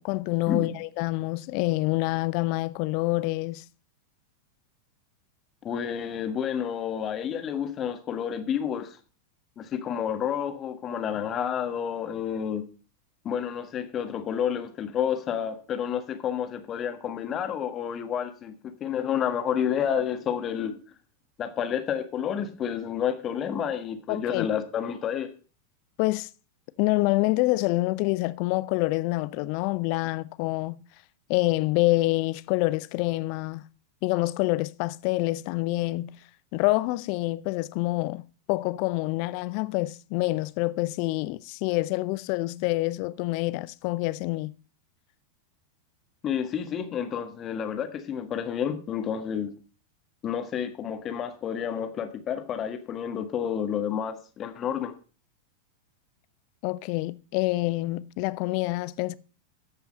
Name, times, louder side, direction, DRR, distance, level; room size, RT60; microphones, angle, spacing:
voice 1, 0.0-3.6 24.1-24.5 26.0-26.3 26.8-30.8 31.3-33.6 34.0-36.1 36.5-38.2 38.5-44.5 56.6-59.1, left 20 dB, 45° left, 0.5 m, -27 dB
voice 2, 5.6-9.0 9.6-12.6 13.2-18.5 18.8-20.7 21.4-25.3 46.2-49.5 50.2-54.9, left 8 dB, 30° left, 1.5 m, -30 dB
14.0 x 5.7 x 5.2 m
figure-of-eight pair, 90°, 0 cm